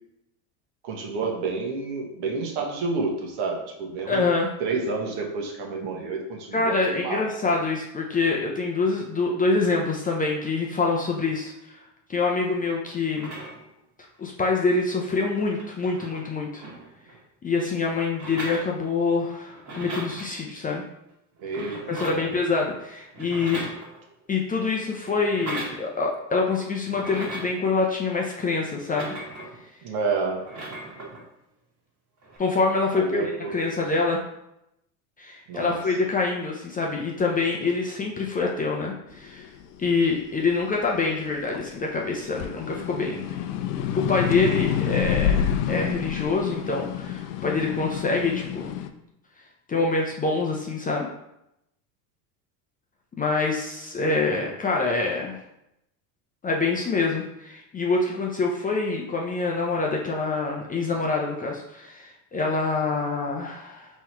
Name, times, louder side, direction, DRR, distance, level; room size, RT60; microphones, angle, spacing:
voice 1, 0.8-4.2 4.6-7.3 21.4-22.4 29.8-30.4 32.9-33.8 35.5-35.8, right 4 dB, 55° right, 1 dB, 1.2 m, -29 dB
voice 2, 4.1-4.5 6.5-11.8 12.1-13.3 14.2-16.6 17.4-20.8 21.9-23.6 24.3-29.1 32.4-33.1 33.5-34.2 35.2-39.5 39.8-43.3 43.9-48.7 49.7-51.1 53.2-55.4 56.4-63.9, left 3 dB, 20° left, -1 dB, 0.5 m, -25 dB
sound 1, 13.1-13.8 14.9-15.0 15.3-17.2 18.1-19.2 19.5-20.3 21.4-22.4 23.1-24.2 25.2-25.8 26.9-27.6 28.7-29.6 30.3-31.2 32.2-32.4, right 2 dB, 40° right, 1.6 m, -38 dB
sound 2, 39.3-41.8 42.2-48.9, left 9 dB, 80° left, 0.6 m, -28 dB
3.8 x 3.1 x 4.3 m, 0.84 s
hypercardioid pair, 95°, 47 cm